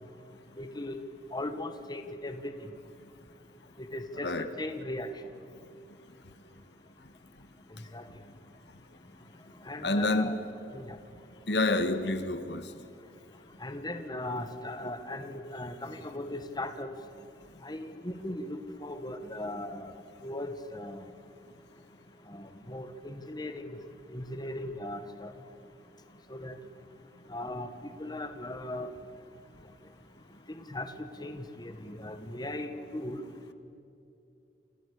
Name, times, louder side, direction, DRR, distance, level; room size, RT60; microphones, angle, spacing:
voice 1, 0.6-1.0 1.3-2.5 3.8-5.1 7.9-8.1 9.7-10.4 10.7-11.0 13.6-16.9 17.6-19.9 20.2-21.0 22.3-23.8 24.1-25.3 26.3-26.6 27.3-27.7 28.0-28.9 30.5-33.2, left 1 dB, 25° left, 8 dB, 1.8 m, -38 dB
voice 2, 9.8-10.4 11.5-12.7, left 2 dB, 70° left, 10 dB, 1.7 m, -28 dB
29.0 x 27.5 x 6.9 m, 2.6 s
head